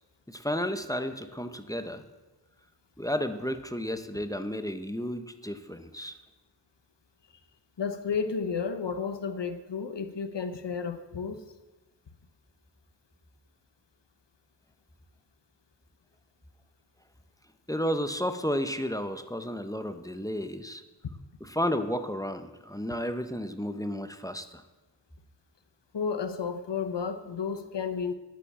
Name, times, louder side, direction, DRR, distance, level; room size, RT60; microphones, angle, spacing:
voice 1, 0.3-2.0 3.0-6.2 17.7-20.8 21.4-24.6, equal, 10° left, 9 dB, 0.9 m, -32 dB
voice 2, 7.8-11.4 25.9-28.1, left 6 dB, 80° left, 10 dB, 1.1 m, -32 dB
9.9 x 8.6 x 7.5 m, 1.2 s
wide cardioid pair, 45°, 42 cm